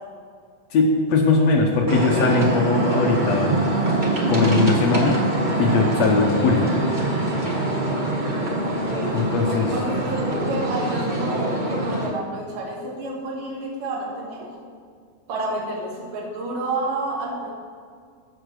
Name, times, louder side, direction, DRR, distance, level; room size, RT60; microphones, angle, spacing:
voice 1, 0.7-3.6 4.3-5.2 5.6-6.7 9.1-9.7, left 4 dB, 65° left, 1 dB, 1.9 m, -20 dB
sound 1, 1.9-12.1, right 2 dB, 45° right, 0.6 m, -23 dB
voice 2, 8.6-9.2 9.7-14.5 15.3-17.5, right 2 dB, 80° right, -2 dB, 3.3 m, -30 dB
14.0 x 5.9 x 6.5 m, 2.1 s
omnidirectional pair, 3.7 m